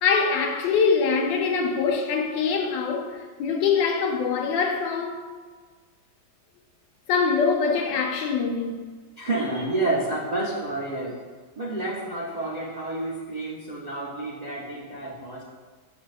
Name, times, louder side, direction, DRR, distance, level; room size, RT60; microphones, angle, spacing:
voice 1, 0.0-5.2 7.1-8.8, left 5 dB, 90° left, 1.3 m, -24 dB
voice 2, 9.2-11.2 11.6-15.4, right 2 dB, 90° right, 0.3 m, -29 dB
6.9 x 6.4 x 2.4 m
omnidirectional pair, 1.9 m